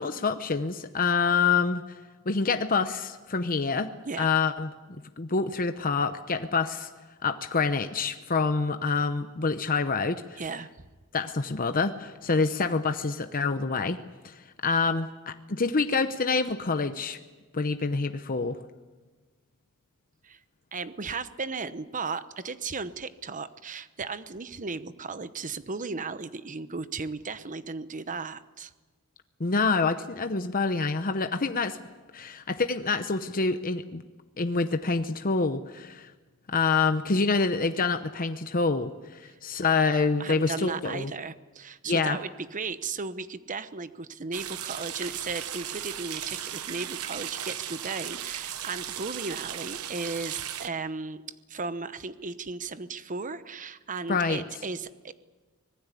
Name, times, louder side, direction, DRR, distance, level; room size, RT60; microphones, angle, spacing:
voice 1, 0.0-1.8 2.3-3.9 4.2-4.7 5.2-6.9 7.2-10.4 11.1-14.0 14.2-17.2 17.5-18.6 29.4-31.8 32.1-34.0 34.4-36.1 36.5-41.1 41.9-42.2 54.1-54.4, left 4 dB, 40° left, 8 dB, 0.9 m, -26 dB
voice 2, 10.4-10.7 20.2-20.4 20.7-28.7 39.3-39.4 40.2-51.2 51.5-55.1, right 4 dB, 35° right, 13 dB, 0.9 m, -35 dB
sound 1, 44.3-50.7, right 10 dB, 80° right, 1.1 m, -36 dB
25.5 x 19.5 x 8.4 m, 1.3 s
head